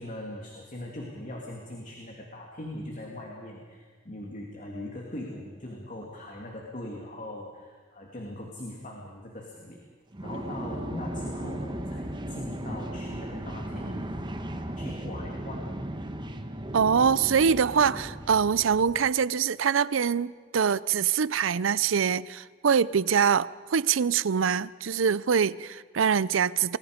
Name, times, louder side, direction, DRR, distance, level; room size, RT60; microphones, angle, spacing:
voice 1, 0.0-9.8 10.2-14.1 14.5-15.7, left 1 dB, 40° left, 2.7 m, -40 dB
sound 1, 10.1-19.1, right 1 dB, 25° right, 1.2 m, -36 dB
voice 2, 16.7-26.8, right 7 dB, 85° right, 0.5 m, -24 dB
28.5 x 21.5 x 5.2 m
head